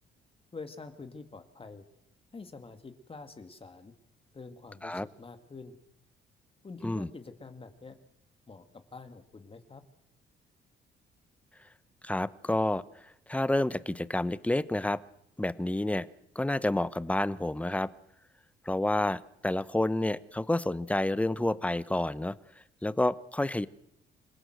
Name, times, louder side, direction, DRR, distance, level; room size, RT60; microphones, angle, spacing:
voice 1, 0.5-1.9 2.3-3.9 4.3-5.8 6.6-7.9 8.5-9.8, left 4 dB, 30° left, 7 dB, 2.1 m, -46 dB
voice 2, 12.0-12.8 13.3-15.0 15.4-16.1 16.3-17.9 18.6-22.3 22.8-23.7, left 1 dB, 5° left, 16 dB, 0.9 m, -29 dB
27.0 x 17.0 x 8.0 m, 0.82 s
cardioid pair, 90°, 20 cm